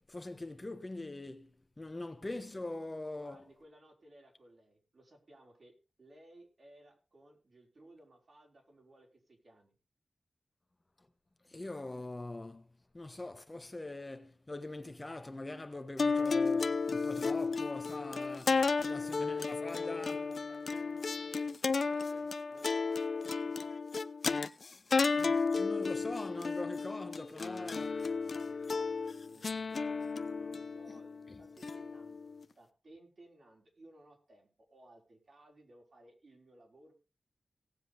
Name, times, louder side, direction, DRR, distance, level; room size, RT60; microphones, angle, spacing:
voice 1, 0.0-1.5 1.8-3.5 11.4-12.7 12.9-20.3 24.7-27.9 31.3-31.4, left 2 dB, 25° left, 1.2 m, -43 dB
voice 2, 3.1-9.8 18.8-20.8 21.7-23.8 27.3-36.9, right 1 dB, 55° right, 5.2 m, -60 dB
sound 1, 16.0-32.4, left 4 dB, 60° left, 0.7 m, -33 dB
17.5 x 7.6 x 5.0 m
wide cardioid pair, 85°, 0 cm